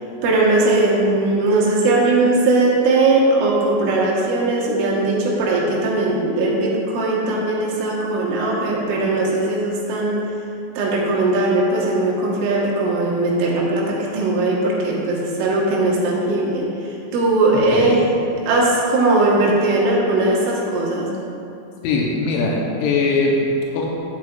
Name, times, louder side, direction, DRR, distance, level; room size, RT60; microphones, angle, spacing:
voice 1, 0.2-10.2 10.8-18.0 18.5-21.1, right 2 dB, 85° right, -4 dB, 3.8 m, -19 dB
voice 2, 21.8-23.9, left 3 dB, 90° left, -3 dB, 3.3 m, -21 dB
12.0 x 8.2 x 2.4 m, 2.7 s
omnidirectional pair, 5.5 m